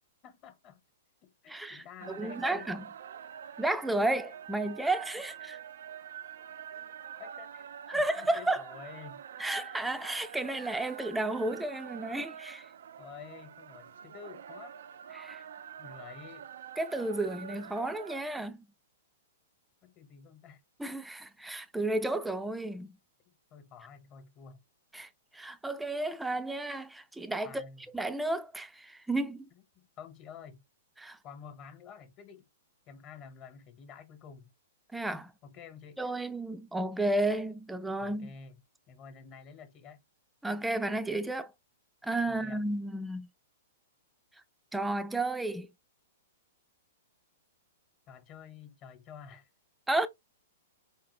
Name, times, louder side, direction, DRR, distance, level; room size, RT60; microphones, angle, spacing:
voice 1, 0.2-0.8 1.2-2.7 7.2-7.7 7.9-9.2 13.0-14.8 15.8-16.5 19.8-20.6 23.3-24.6 27.4-27.9 29.7-30.6 31.2-32.5 32.9-34.5 35.4-36.0 38.0-38.6 38.9-40.0 42.3-42.6 48.1-49.5, left 7 dB, 35° left, 1.2 m, -50 dB
voice 2, 1.5-2.9 3.6-5.6 7.9-8.6 9.4-12.7 15.1-15.4 16.8-18.7 20.8-23.0 24.9-27.6 27.9-29.5 31.0-31.2 34.9-35.3 36.0-38.3 40.4-41.5 42.0-43.3 44.7-45.7 49.9-50.1, right 2 dB, 5° right, 0.5 m, -32 dB
sound 1, 2.0-18.2, right 9 dB, 70° right, 0.4 m, -46 dB
4.5 x 3.6 x 3.0 m
hypercardioid pair, 130°, 0 cm